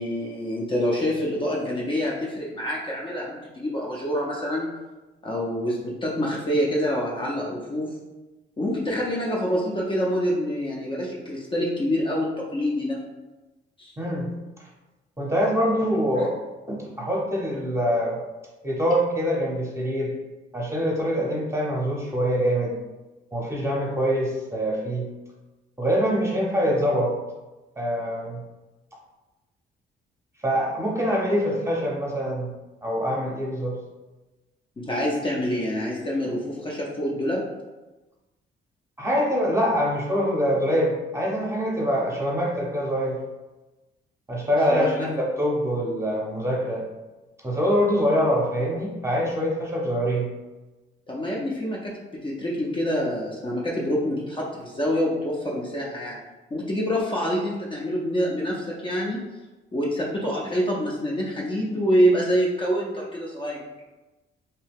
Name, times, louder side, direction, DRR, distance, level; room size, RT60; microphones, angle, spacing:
voice 1, 0.0-4.7 5.2-7.9 8.6-13.0 13.8-13.9 16.2-16.3 34.8-37.4 44.7-45.1 51.1-56.2 56.5-59.2 59.7-63.7, equal, 25° left, -4 dB, 0.6 m, -26 dB
voice 2, 14.0-14.3 15.2-16.3 16.7-18.2 18.6-20.1 20.5-22.7 23.3-25.0 25.8-27.1 27.8-28.4 30.4-32.5 32.8-33.7 39.0-43.2 44.3-46.8 47.4-50.3, equal, 15° right, -3 dB, 0.8 m, -24 dB
2.8 x 2.2 x 3.4 m, 1.1 s
cardioid pair, 90°, 20 cm